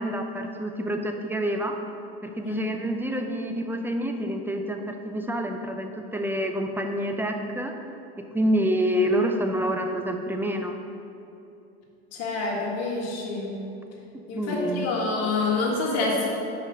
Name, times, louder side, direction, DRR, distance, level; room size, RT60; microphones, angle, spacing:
voice 1, 0.0-1.8 2.2-7.9 8.3-10.7 14.4-14.9, equal, 5° right, 4 dB, 0.5 m, -27 dB
voice 2, 2.4-2.7 12.1-13.6 14.3-16.3, left 3 dB, 55° left, -2 dB, 1.7 m, -27 dB
5.4 x 5.1 x 6.2 m, 2.7 s
supercardioid pair, 110°, 32 cm